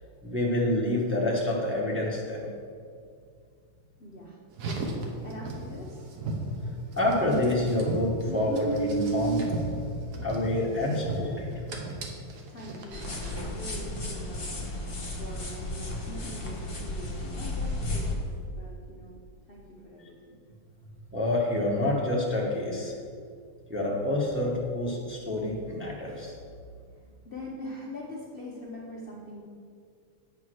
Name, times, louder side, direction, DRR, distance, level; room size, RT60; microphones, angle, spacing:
voice 1, 0.2-2.5 7.0-9.5 10.2-11.5 21.1-22.9 23.7-26.3, left 1 dB, 10° right, -4 dB, 0.8 m, -27 dB
voice 2, 4.0-4.4 4.9-6.1 12.5-14.5 15.2-19.2 19.5-20.4 27.2-29.4, left 1 dB, 70° left, -4 dB, 0.5 m, -43 dB
Car, 4.5-13.5, right 2 dB, 55° right, 1.3 m, -34 dB
sound 1, 12.9-18.2, left 2 dB, 25° left, 0.7 m, -34 dB
8.6 x 4.6 x 6.2 m, 2.2 s
omnidirectional pair, 2.4 m